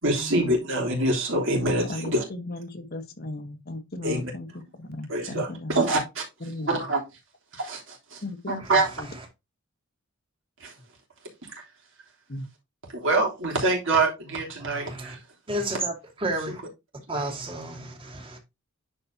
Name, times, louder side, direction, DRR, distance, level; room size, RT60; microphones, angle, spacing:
voice 1, 0.0-2.2 4.0-4.3 5.1-6.2 6.7-7.0 7.5-8.9 10.6-10.7 12.9-15.2 16.5-16.6 17.1-17.2, right 2 dB, 65° right, 3.3 m, -25 dB
voice 2, 1.9-4.5 4.8-5.8 6.4-6.8 8.2-9.1 12.3-12.5, left 2 dB, 50° left, 1.2 m, -36 dB
voice 3, 8.6-9.3 14.6-15.2 15.5-16.6 17.1-18.4, right 1 dB, 25° right, 2.2 m, -32 dB
10.0 x 5.1 x 2.8 m
head